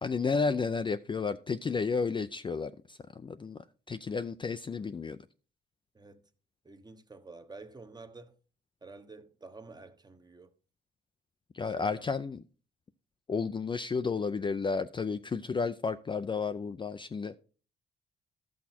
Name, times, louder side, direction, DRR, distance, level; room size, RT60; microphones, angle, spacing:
voice 1, 0.0-3.6 3.9-5.2 11.5-12.4 13.3-17.3, left 5 dB, 25° left, 0.4 m, -32 dB
voice 2, 6.6-8.4 8.8-10.5 11.6-12.1, right 3 dB, 20° right, 1.0 m, -50 dB
12.5 x 6.3 x 4.3 m
cardioid pair, 90°, 20 cm